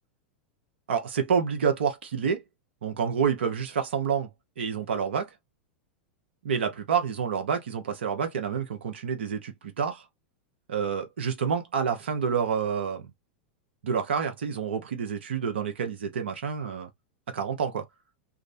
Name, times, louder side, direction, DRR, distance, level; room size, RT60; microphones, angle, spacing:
voice 1, 0.9-2.4 2.8-4.3 4.6-5.3 6.4-10.0 10.7-13.1 13.8-16.9 17.3-17.8, right 6 dB, 80° right, 0.7 m, -28 dB
2.5 x 2.0 x 2.4 m
hypercardioid pair, 105°, 6 cm